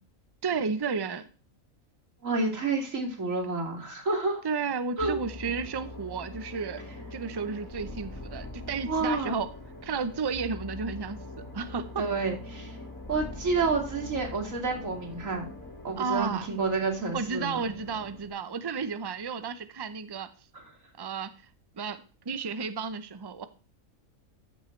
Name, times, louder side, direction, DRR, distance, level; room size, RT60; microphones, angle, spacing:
voice 1, 0.4-1.3 4.4-6.8 7.1-9.5 9.8-11.2 11.5-12.1 16.0-16.5 17.1-20.3 21.0-21.3 21.8-23.4, right 5 dB, 35° right, 12 dB, 0.4 m, -32 dB
voice 2, 2.2-4.4 5.0-5.1 8.9-9.4 12.0-12.7 13.1-15.5 15.8-17.6, right 3 dB, 60° right, 1 dB, 2.8 m, -29 dB
sound 1, 5.0-18.3, left 2 dB, 65° left, 4.9 m, -43 dB
14.0 x 6.2 x 3.2 m, 0.37 s
omnidirectional pair, 1.5 m